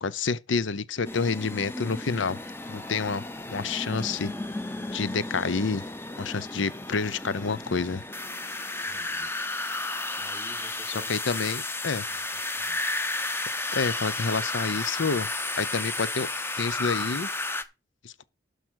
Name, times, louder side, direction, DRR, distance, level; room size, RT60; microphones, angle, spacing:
voice 1, 0.0-2.4 2.7-4.3 4.9-5.8 6.2-8.0 11.1-12.0 13.7-15.3 15.5-16.3 16.6-17.3 18.0-18.2, left 4 dB, 90° left, 0.7 m, -28 dB
sound 1, 1.1-17.6, left 2 dB, 10° left, 0.7 m, -33 dB
voice 2, 8.8-9.3 10.1-11.5 12.1-12.8, left 1 dB, 30° left, 2.5 m, -51 dB
12.5 x 5.0 x 6.3 m
head